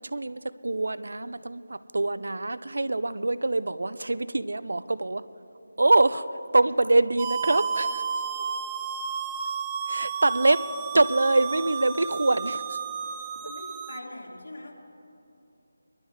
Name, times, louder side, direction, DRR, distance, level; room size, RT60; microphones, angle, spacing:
voice 1, 0.0-5.2 5.8-6.3 6.5-8.0 9.9-10.7 10.9-12.8, right 2 dB, 75° right, 15 dB, 0.5 m, -24 dB
sound 1, 7.2-14.0, right 6 dB, 20° right, 0.5 m, -32 dB
voice 2, 13.4-14.7, left 1 dB, 70° left, -2 dB, 3.1 m, -42 dB
22.0 x 12.0 x 3.7 m, 3.0 s
figure-of-eight pair, 165°, 0 cm